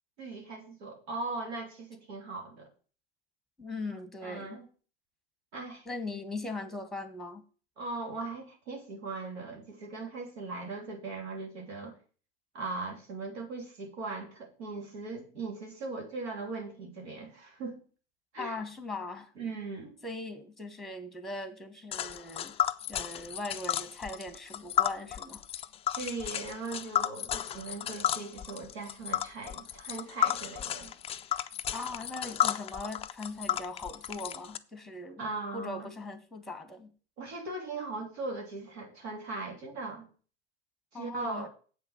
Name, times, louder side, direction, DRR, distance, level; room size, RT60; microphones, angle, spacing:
voice 1, 0.2-2.7 4.2-4.7 5.5-5.8 7.8-11.9 12.5-17.8 18.3-18.5 19.4-20.0 26.0-30.9 35.2-35.9 37.2-40.1 40.9-41.5, right 3 dB, 65° right, 3.1 m, -39 dB
voice 2, 3.6-4.6 5.9-7.4 18.4-19.3 20.0-22.6 22.9-25.4 31.7-35.2 35.5-36.9 40.9-41.5, left 2 dB, ahead, 1.6 m, -40 dB
Tick, 21.9-34.6, left 11 dB, 20° left, 0.4 m, -33 dB
8.0 x 5.6 x 7.2 m
figure-of-eight pair, 90°, 34 cm